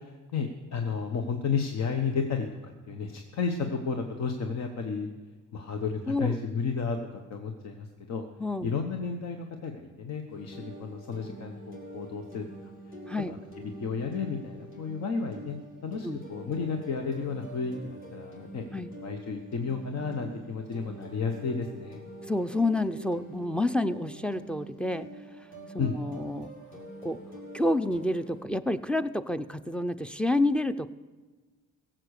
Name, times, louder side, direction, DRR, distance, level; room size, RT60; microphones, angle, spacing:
voice 1, 0.0-5.1 5.5-7.0 7.3-8.3 8.6-12.4 13.3-13.4 13.8-15.6 15.8-22.0 25.8-25.9, left 5 dB, 60° left, 5 dB, 1.1 m, -32 dB
voice 2, 8.4-8.7 13.1-13.3 16.0-16.2 18.7-18.9 22.3-25.1 25.7-26.5 27.0-27.2 27.5-30.9, left 1 dB, 5° left, 13 dB, 0.5 m, -29 dB
sound 1, 10.3-28.4, right 1 dB, 40° left, 4.1 m, -45 dB
16.0 x 7.6 x 6.5 m, 1.3 s
cardioid pair, 90°, 30 cm